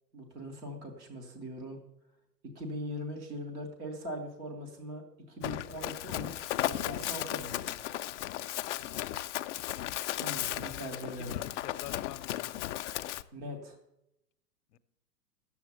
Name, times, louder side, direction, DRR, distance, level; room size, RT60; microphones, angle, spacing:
voice 1, 0.1-1.8 2.5-5.0 5.3-7.8 10.2-11.3 13.3-13.8, equal, 10° right, 0.4 m, -41 dB
Run, 5.4-13.2, left 14 dB, 50° left, 0.5 m, -35 dB
voice 2, 10.5-12.8 14.7-14.8, left 13 dB, 70° left, 0.8 m, -49 dB
9.5 x 7.0 x 7.8 m
hypercardioid pair, 140°, 49 cm